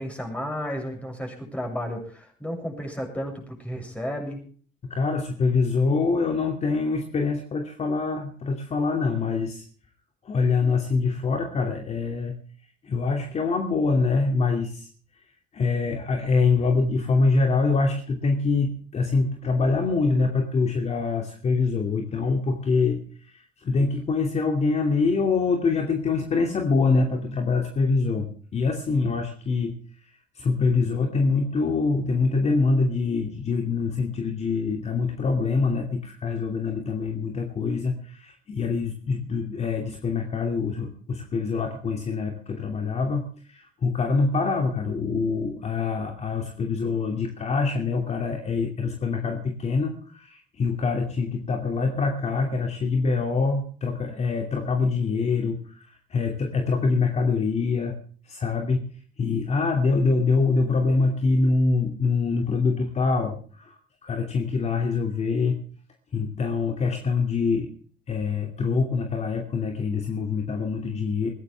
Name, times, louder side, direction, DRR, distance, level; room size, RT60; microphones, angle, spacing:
voice 1, 0.0-4.4, equal, 5° left, 2 dB, 7.2 m, -33 dB
voice 2, 4.9-9.6 10.2-12.3 12.8-14.9 15.5-29.8 30.3-58.0 58.2-58.9 59.2-65.6 66.1-67.7 68.1-71.3, left 4 dB, 40° left, 3 dB, 2.7 m, -25 dB
20.5 x 16.0 x 3.5 m, 0.43 s
cardioid pair, 110°, 17 cm